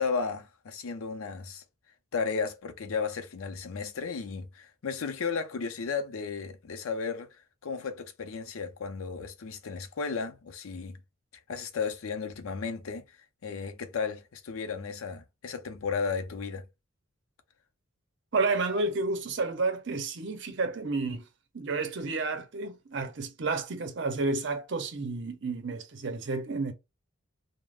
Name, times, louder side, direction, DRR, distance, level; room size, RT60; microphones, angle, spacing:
voice 1, 0.0-1.6 2.1-7.3 7.6-11.0 11.5-13.0 13.4-16.7, left 5 dB, 85° left, 0.5 m, -34 dB
voice 2, 18.3-21.3 21.5-26.7, right 3 dB, 60° right, 0.6 m, -31 dB
2.4 x 2.0 x 3.3 m
head